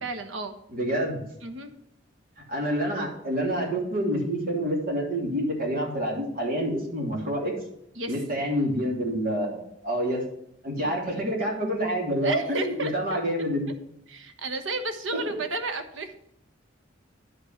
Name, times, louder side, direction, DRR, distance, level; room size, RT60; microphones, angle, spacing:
voice 1, 0.0-0.5 1.4-1.7 7.9-8.1 12.2-13.2 14.1-16.1, right 2 dB, 80° right, 8 dB, 1.2 m, -32 dB
voice 2, 0.7-1.2 2.5-7.5 8.1-10.2 10.6-13.7 15.1-15.4, equal, 50° right, -2 dB, 3.2 m, -27 dB
10.0 x 5.6 x 5.8 m, 0.76 s
head